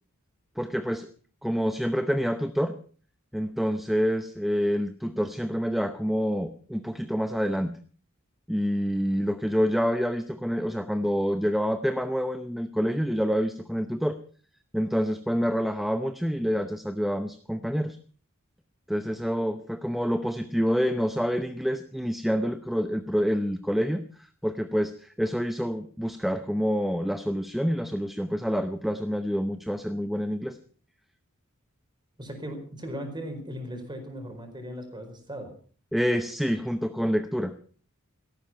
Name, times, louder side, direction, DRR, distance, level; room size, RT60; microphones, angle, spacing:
voice 1, 0.6-1.1 1.4-2.8 3.3-7.7 8.5-14.2 14.7-18.0 18.9-30.6 35.9-37.5, equal, ahead, 9 dB, 0.8 m, -27 dB
voice 2, 32.2-35.5, equal, 20° right, 6 dB, 4.6 m, -38 dB
17.0 x 14.0 x 5.7 m, 0.43 s
head